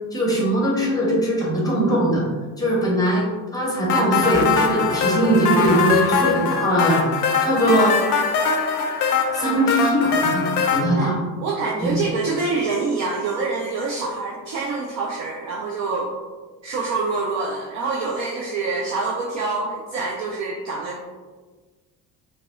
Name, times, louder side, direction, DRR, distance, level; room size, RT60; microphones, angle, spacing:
voice 1, 0.1-2.2 2.6-7.0 7.4-7.9 9.3-11.2 11.8-12.0, right 1 dB, 5° left, -5 dB, 0.9 m, -20 dB
sound 1, 3.9-10.8, left 5 dB, 65° left, 0.5 m, -22 dB
voice 2, 11.4-16.1 16.6-21.0, right 3 dB, 40° right, -2 dB, 0.4 m, -26 dB
3.2 x 2.2 x 2.5 m, 1.3 s
figure-of-eight pair, 50°, 50 cm